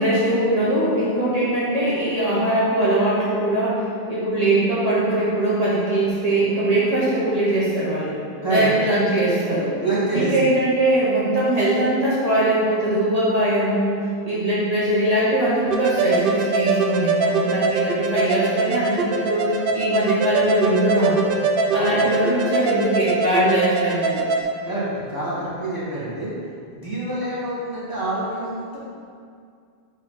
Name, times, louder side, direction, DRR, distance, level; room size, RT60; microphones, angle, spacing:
voice 1, 0.0-8.2 8.5-9.7 10.1-14.0 14.2-21.2 21.7-24.2, right 1 dB, 40° right, -9 dB, 1.1 m, -21 dB
voice 2, 9.8-10.4 17.3-17.5 21.7-22.0 24.6-26.3 26.7-28.8, right 2 dB, 20° left, -10 dB, 1.5 m, -26 dB
sound 1, 15.7-24.4, right 3 dB, 65° right, 0.8 m, -22 dB
5.4 x 3.1 x 5.6 m, 2.3 s
omnidirectional pair, 1.0 m